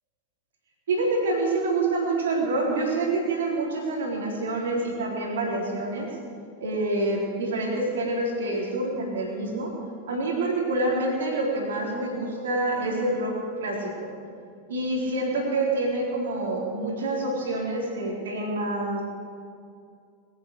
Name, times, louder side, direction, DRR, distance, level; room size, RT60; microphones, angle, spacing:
voice 1, 0.9-6.1 6.6-9.7 10.1-14.1 14.7-19.0, right 2 dB, 65° right, -1 dB, 3.7 m, -27 dB
21.0 x 10.5 x 6.6 m, 2.3 s
figure-of-eight pair, 90°, 0 cm